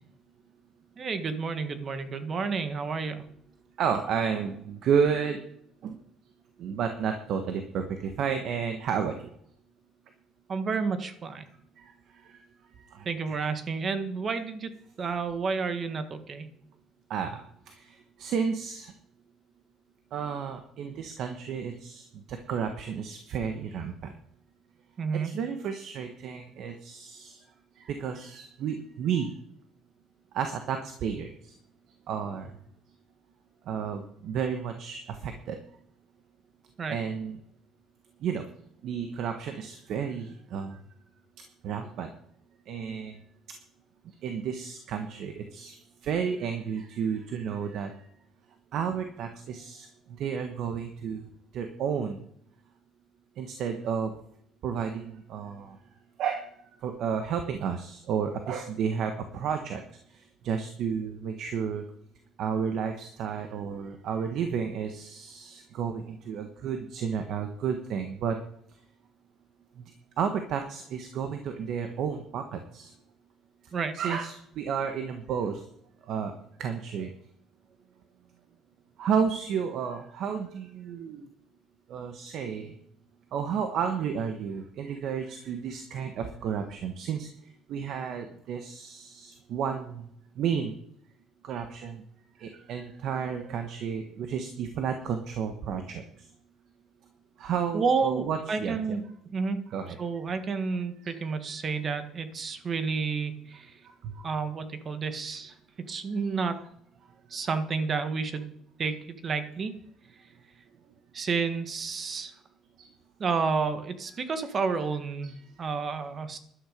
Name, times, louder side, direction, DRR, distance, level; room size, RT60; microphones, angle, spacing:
voice 1, 0.9-3.2 10.5-11.4 13.0-14.7 15.0-16.5 25.0-25.4 36.8-37.0 73.7-73.9 97.7-99.0 99.3-99.6 100.0-103.7 104.2-105.5 105.9-106.6 107.3-108.5 108.8-109.7 111.1-112.3 113.2-116.4, right 5 dB, 30° right, 10 dB, 1.6 m, -30 dB
voice 2, 3.8-5.4 5.8-6.0 6.6-9.1 12.2-12.4 12.9-13.4 17.1-17.4 17.7-18.9 20.1-24.1 25.2-27.4 27.8-29.3 30.3-31.5 32.1-32.5 33.7-35.6 36.9-37.4 38.2-38.5 38.8-40.8 41.6-42.1 42.7-43.2 44.2-45.8 46.0-47.9 48.7-49.9 50.2-51.3 51.5-52.2 53.4-54.1 54.6-55.8 56.2-56.5 56.8-59.8 60.1-61.8 62.4-68.4 69.8-69.9 70.2-72.9 73.9-75.6 76.1-76.3 76.6-77.1 79.0-81.2 81.9-82.7 83.3-87.3 87.7-90.0 90.4-90.7 91.4-92.0 92.4-96.0 97.4-98.8 99.7-100.0 101.0-101.2 104.0-104.3 112.8-112.9 115.2-115.3, right 7 dB, 55° right, 6 dB, 1.4 m, -32 dB
13.0 x 11.5 x 5.2 m, 0.70 s
cardioid pair, 145°, 0 cm